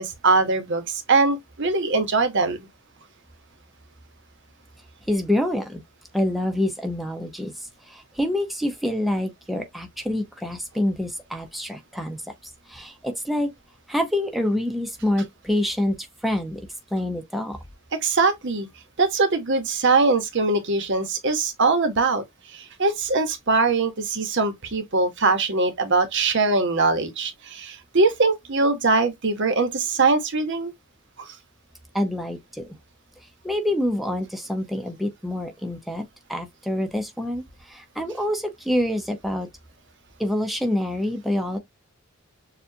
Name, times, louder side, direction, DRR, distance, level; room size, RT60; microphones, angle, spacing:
voice 1, 0.0-2.6 18.0-18.7 19.0-22.2 22.5-30.7 31.2-31.3, right 3 dB, 55° right, 1.0 m, -22 dB
voice 2, 5.1-5.8 6.1-12.3 12.7-13.5 13.9-16.6 16.9-17.6 31.9-32.7 33.4-39.5 40.2-41.6, left 1 dB, ahead, 0.7 m, -26 dB
6.8 x 2.4 x 2.7 m
head